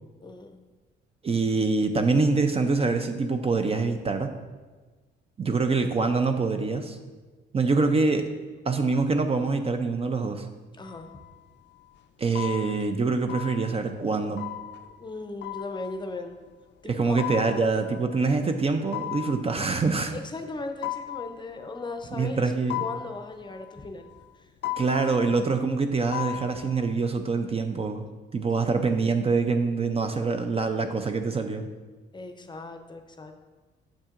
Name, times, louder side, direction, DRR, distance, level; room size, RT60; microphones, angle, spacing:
voice 1, 0.2-0.6 10.8-11.2 15.0-16.3 16.8-17.4 20.1-22.4 22.8-24.5 28.5-28.7 32.1-33.4, left 3 dB, 25° left, 6 dB, 0.6 m, -38 dB
voice 2, 1.2-4.3 5.4-7.0 7.5-8.3 8.7-10.5 12.2-14.5 16.9-20.1 22.1-22.8 24.8-28.0 28.3-31.7, right 4 dB, 30° right, 6 dB, 0.5 m, -25 dB
sound 1, 10.8-11.8 12.3-12.9 13.3-13.9 14.4-16.3 17.2-18.4 18.9-19.8 20.8-22.1 22.7-24.2 24.6-25.7 26.1-26.9, left 14 dB, 65° left, 0.4 m, -37 dB
7.2 x 7.2 x 2.5 m, 1.3 s
cardioid pair, 90°, 20 cm